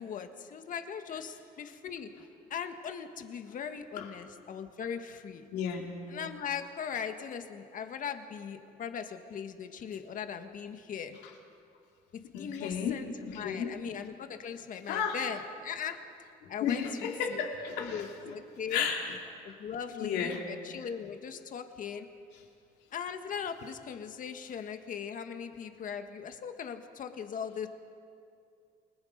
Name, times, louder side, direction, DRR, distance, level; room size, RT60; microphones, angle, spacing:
voice 1, 0.0-2.1 2.5-5.5 6.1-11.2 12.4-16.0 16.5-17.4 17.8-18.9 19.4-22.1 22.9-27.7, left 7 dB, 50° left, 7 dB, 1.7 m, -39 dB
voice 2, 5.5-6.0 12.3-13.7 14.9-15.2 16.4-18.0 18.7-19.0 20.0-20.4, left 7 dB, 85° left, 1 dB, 3.0 m, -33 dB
28.0 x 21.0 x 5.3 m, 2.4 s
cardioid pair, 110°, 17 cm